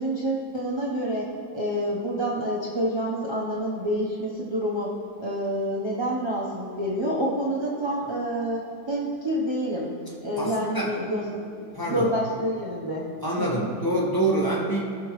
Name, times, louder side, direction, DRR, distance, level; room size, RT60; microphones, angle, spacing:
voice 1, 0.0-4.9 5.2-9.9 10.2-11.4 11.8-13.1 13.4-13.7, equal, 30° right, -6 dB, 0.5 m, -28 dB
voice 2, 10.4-10.9 11.7-12.1 13.2-14.9, right 1 dB, 10° left, -5 dB, 1.5 m, -26 dB
17.5 x 6.0 x 3.2 m, 2.3 s
omnidirectional pair, 2.1 m